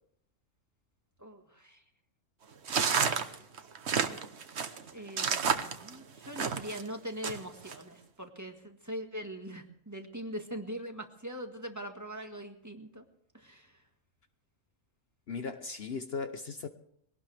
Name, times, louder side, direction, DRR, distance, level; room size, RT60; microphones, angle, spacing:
voice 1, 1.2-1.8 4.9-13.0 13.3-13.8, equal, 15° right, 3 dB, 1.8 m, -42 dB
sound 1, 2.7-6.8 7.2-7.8, right 6 dB, 60° right, 1.3 m, -30 dB
voice 2, 15.3-16.7, left 4 dB, 55° left, 8 dB, 1.0 m, -37 dB
22.5 x 18.0 x 3.4 m, 0.71 s
omnidirectional pair, 1.3 m